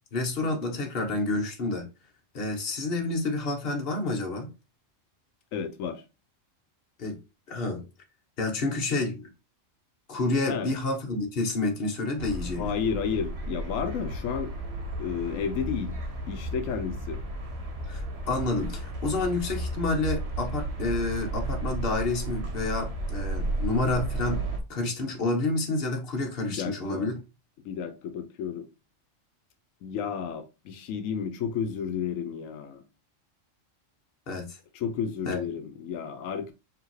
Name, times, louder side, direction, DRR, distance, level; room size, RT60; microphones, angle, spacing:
voice 1, 0.1-1.9 2.3-4.5 7.0-7.2 7.5-7.9 8.4-9.3 10.1-12.7 17.9-27.1 34.3-34.6 35.3-35.4, left 2 dB, 50° left, 1.2 m, -29 dB
voice 2, 5.5-6.0 10.5-10.7 12.6-14.5 15.0-15.9 16.3-17.2 26.5-27.1 27.6-28.6 29.8-32.8 34.7-36.5, left 7 dB, 90° left, 1.0 m, -32 dB
sound 1, 12.2-24.6, right 2 dB, 60° right, 1.1 m, -33 dB
4.9 x 2.8 x 3.1 m
omnidirectional pair, 1.3 m